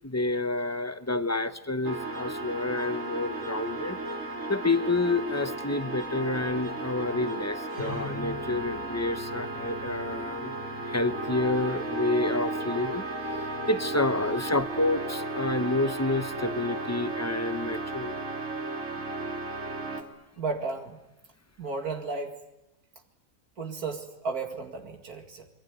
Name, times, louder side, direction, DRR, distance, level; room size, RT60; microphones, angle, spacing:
voice 1, 0.0-4.0 4.5-10.5 10.8-13.0 13.3-18.2, left 2 dB, 15° left, 11 dB, 0.9 m, -29 dB
sound 1, 1.8-20.0, right 2 dB, 60° right, 3.2 m, -34 dB
voice 2, 20.4-21.0 21.6-22.4 23.6-25.5, right 4 dB, 85° right, 4 dB, 2.7 m, -34 dB
26.5 x 23.5 x 9.5 m, 0.91 s
omnidirectional pair, 1.6 m